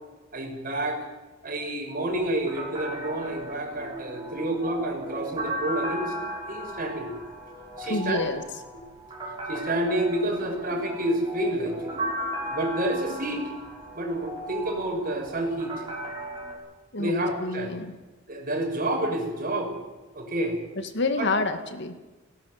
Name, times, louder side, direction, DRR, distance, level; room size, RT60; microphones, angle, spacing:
voice 1, 0.3-1.0 1.4-6.1 6.5-7.1 7.8-8.2 9.5-12.0 12.5-13.4 13.9-15.7 17.0-17.7 18.3-19.7 20.1-20.6 21.2-21.3, right 1 dB, 45° right, 2 dB, 6.1 m, -29 dB
sound 1, 2.1-16.5, right 1 dB, 25° right, 6.6 m, -36 dB
voice 2, 7.8-8.4 16.9-17.1 17.4-18.0 20.8-22.0, left 3 dB, 60° left, 9 dB, 2.1 m, -28 dB
18.5 x 18.0 x 9.4 m, 1.2 s
head